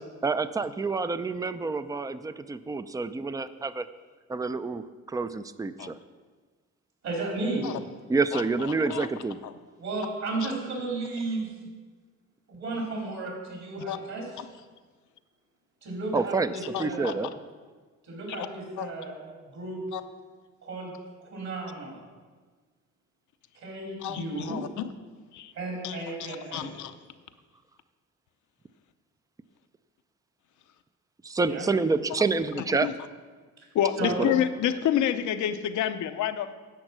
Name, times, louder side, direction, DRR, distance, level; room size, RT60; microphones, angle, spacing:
voice 1, 0.2-3.9 4.3-4.8 5.1-6.0 8.1-9.4 16.1-16.5 16.8-17.3 31.2-32.9 34.0-34.3, right 4 dB, 10° right, 13 dB, 0.4 m, -28 dB
voice 2, 7.0-7.7 9.8-11.5 12.5-14.3 15.8-17.2 18.0-19.8 20.6-20.9 21.2-22.0 23.5-24.6 25.5-26.7 31.5-31.7 33.6-33.7 34.0-34.2, right 2 dB, 60° right, -1 dB, 4.2 m, -34 dB
voice 3, 8.3-9.1 9.4-9.5 13.9-14.0 14.4-14.5 16.7-17.1 18.4-18.5 18.8-18.9 19.9-20.0 24.0-24.7 25.3-25.5 25.8-26.9 32.6-32.9 33.7-36.5, left 10 dB, 75° left, 10 dB, 0.8 m, -29 dB
10.5 x 7.9 x 6.1 m, 1.4 s
cardioid pair, 90°, 30 cm